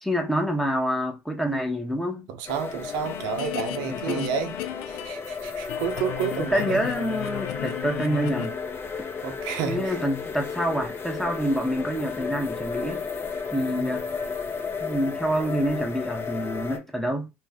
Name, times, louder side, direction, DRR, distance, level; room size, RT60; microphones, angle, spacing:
voice 1, 0.0-2.3 3.9-4.3 6.3-8.6 9.6-13.1 13.5-14.1 14.8-17.3, equal, 5° left, 0.9 m, -27 dB
voice 2, 2.3-4.5 4.9-6.8 9.2-10.0 13.5-14.0, right 7 dB, 70° right, 0.7 m, -31 dB
sound 1, 2.5-16.8, left 5 dB, 35° left, 0.7 m, -33 dB
sound 2, 2.6-5.4 5.7-8.5, left 14 dB, 70° left, 0.3 m, -35 dB
2.5 x 2.3 x 3.4 m
hypercardioid pair, 80°, 7 cm